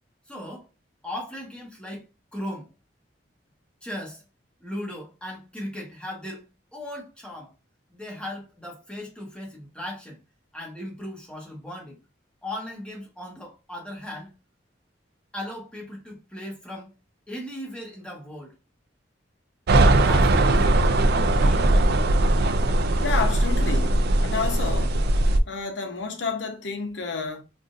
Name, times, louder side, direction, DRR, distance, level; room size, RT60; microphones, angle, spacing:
voice 1, 0.3-0.7 1.0-2.0 2.3-2.7 3.8-4.2 4.6-6.4 6.7-7.5 7.9-10.2 10.5-12.0 12.4-14.3 15.3-16.9 17.3-18.5 19.9-21.9 22.9-23.3, left 1 dB, 5° left, 1.3 m, -37 dB
sound 1, 19.7-25.4, right 2 dB, 60° right, 0.4 m, -20 dB
voice 2, 23.0-25.0 25.5-27.4, left 4 dB, 75° left, 0.7 m, -30 dB
3.7 x 2.5 x 2.5 m
head